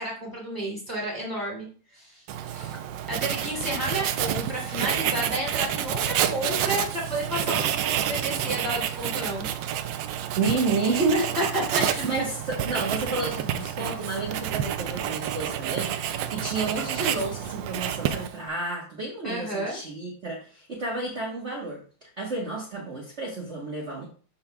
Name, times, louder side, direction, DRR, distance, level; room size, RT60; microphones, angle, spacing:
voice 1, 0.0-2.7 3.1-9.5 11.4-11.8 19.2-19.8, right 1 dB, 10° left, -4 dB, 2.2 m, -31 dB
Writing, 2.3-18.5, right 10 dB, 75° right, 1.1 m, -29 dB
voice 2, 10.4-11.3 11.7-24.1, right 3 dB, 35° right, -3 dB, 1.3 m, -30 dB
12.0 x 4.3 x 2.3 m, 0.41 s
omnidirectional pair, 2.4 m